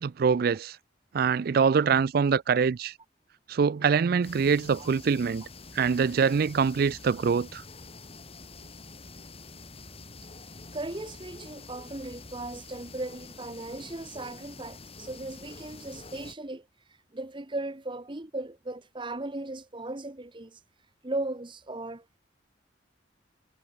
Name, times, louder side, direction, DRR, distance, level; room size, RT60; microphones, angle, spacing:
voice 1, 0.0-0.8 1.1-2.9 3.5-5.4 5.8-7.6, right 6 dB, 55° right, 0.4 m, -24 dB
sound 1, 4.2-16.4, left 3 dB, 35° left, 3.4 m, -47 dB
voice 2, 10.7-16.7 17.1-20.6 21.0-22.2, right 2 dB, 25° right, 1.2 m, -37 dB
head